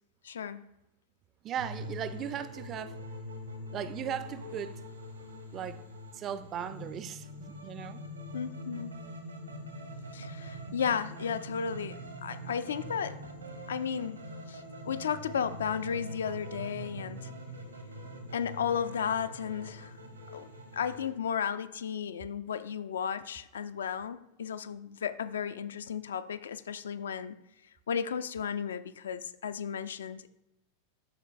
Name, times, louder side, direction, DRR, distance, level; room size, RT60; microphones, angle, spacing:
voice 1, 0.2-0.7 8.3-8.9 10.1-13.2 13.7-14.2 14.5-17.3 18.3-19.9 20.3-20.5 20.7-27.4 27.9-30.3, left 7 dB, 65° left, 0.3 m, -34 dB
voice 2, 1.4-3.0 3.7-4.9 5.5-5.8 6.1-8.0 10.7-10.8, right 9 dB, 30° right, 0.4 m, -37 dB
sound 1, 1.6-21.1, equal, 80° right, 1.1 m, -43 dB
12.0 x 4.3 x 2.5 m
figure-of-eight pair, 90°, 0 cm